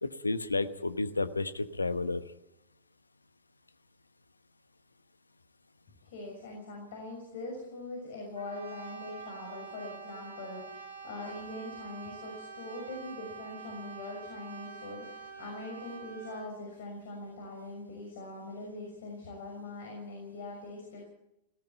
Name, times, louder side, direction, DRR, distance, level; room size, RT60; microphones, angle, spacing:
voice 1, 0.0-2.2, left 3 dB, 80° left, 12 dB, 1.1 m, -31 dB
voice 2, 6.0-21.1, left 2 dB, 55° left, 2 dB, 6.2 m, -42 dB
Brass instrument, 8.4-16.5, right 5 dB, 80° right, 4.7 m, -46 dB
17.5 x 17.5 x 8.7 m, 0.85 s
figure-of-eight pair, 90°, 0 cm